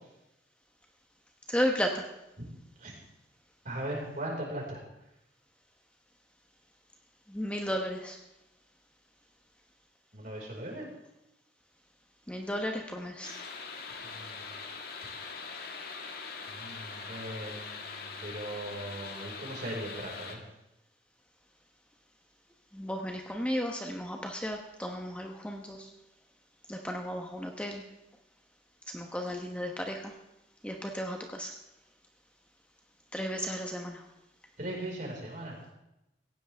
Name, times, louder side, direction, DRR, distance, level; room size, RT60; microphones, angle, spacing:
voice 1, 1.5-2.0 7.3-8.2 12.3-13.3 22.7-25.9 26.7-27.8 28.9-30.1 30.6-31.5 33.1-34.0, equal, 5° left, 2 dB, 1.1 m, -34 dB
voice 2, 3.7-4.8 10.1-10.9 14.0-14.4 16.5-20.4 34.6-35.7, right 1 dB, 50° right, -2 dB, 5.1 m, -39 dB
sound 1, 13.2-20.4, left 4 dB, 60° left, 1.8 m, -42 dB
18.0 x 16.0 x 3.5 m, 0.90 s
head